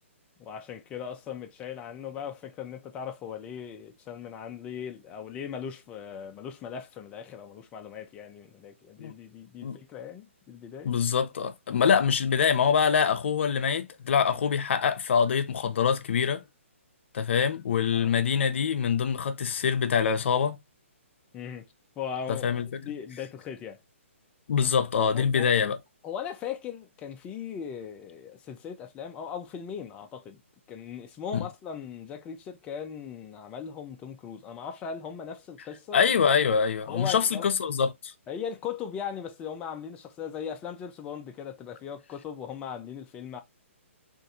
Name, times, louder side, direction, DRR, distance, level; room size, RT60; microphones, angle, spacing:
voice 1, 0.4-10.9 11.7-11.9 17.9-18.1 21.3-21.7 22.0-22.5 22.8-23.8 25.1-25.5 26.0-30.4 30.7-36.2 36.9-37.5 38.3-43.4, left 8 dB, 15° left, 0.5 m, -38 dB
voice 2, 10.8-16.4 17.1-20.6 22.3-22.7 24.5-25.8 35.9-38.1, left 7 dB, 60° left, 0.6 m, -24 dB
3.6 x 2.5 x 2.7 m
hypercardioid pair, 155°, 7 cm